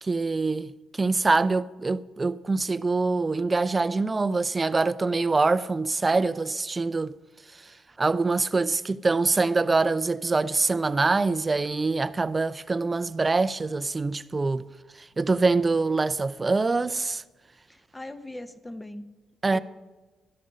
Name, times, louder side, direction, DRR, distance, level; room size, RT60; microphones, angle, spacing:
voice 1, 0.0-7.1 8.0-14.6 15.2-17.2 19.4-19.6, right 3 dB, 25° right, 0.5 m, -24 dB
voice 2, 17.7-19.1 19.5-19.6, left 1 dB, 10° left, 0.9 m, -40 dB
13.0 x 11.0 x 5.3 m
cardioid pair, 90°, 0 cm